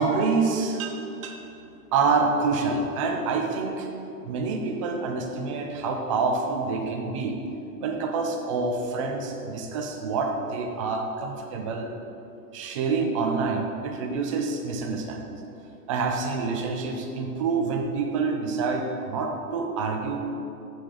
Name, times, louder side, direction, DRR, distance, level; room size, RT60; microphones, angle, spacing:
voice 1, 0.0-1.4 1.9-7.4 7.8-11.9 12.5-15.3 15.9-20.2, right 4 dB, 20° right, 2 dB, 0.4 m, -27 dB
6.6 x 5.9 x 5.1 m, 2.7 s
hypercardioid pair, 135°, 50 cm